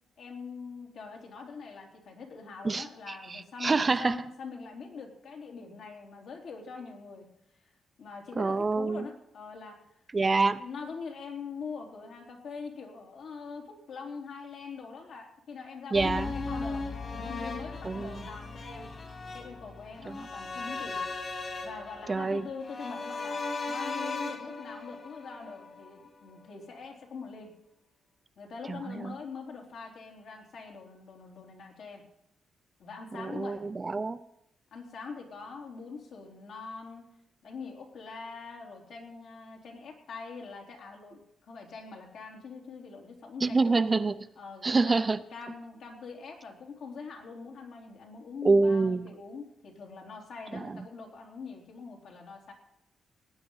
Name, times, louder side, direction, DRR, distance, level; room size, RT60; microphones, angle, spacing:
voice 1, 0.2-7.3 8.0-9.9 10.6-18.9 19.3-21.0 21.6-23.4 23.7-27.5 28.4-32.0 32.8-33.7 34.7-37.0 37.4-43.8 44.4-52.5, left 5 dB, 75° left, 1 dB, 3.5 m, -43 dB
voice 2, 2.6-4.2 8.4-9.0 10.1-10.6 15.9-16.3 17.8-18.2 20.1-20.2 22.1-22.5 28.7-29.1 33.1-34.2 43.4-44.2 44.6-45.2 48.4-49.1 50.5-50.8, right 3 dB, 25° right, 12 dB, 0.6 m, -27 dB
sound 1, 15.9-26.1 26.4-26.5, left 3 dB, 40° left, 2.3 m, -37 dB
19.0 x 9.2 x 5.6 m, 0.81 s
cardioid pair, 110°, 0 cm